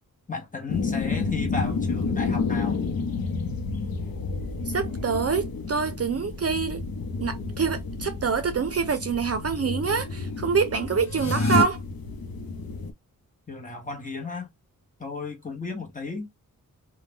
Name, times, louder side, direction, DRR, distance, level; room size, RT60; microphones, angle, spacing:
voice 1, 0.3-2.9 13.5-14.5 15.0-16.3, left 4 dB, 25° left, 1.0 m, -34 dB
sound 1, 0.7-12.9, left 4 dB, 90° left, 0.7 m, -31 dB
voice 2, 4.7-6.8 7.2-11.8, right 5 dB, 45° right, 0.5 m, -26 dB
sound 2, 11.0-11.6, left 2 dB, 55° left, 0.9 m, -23 dB
2.6 x 2.2 x 3.5 m
wide cardioid pair, 105°, 34 cm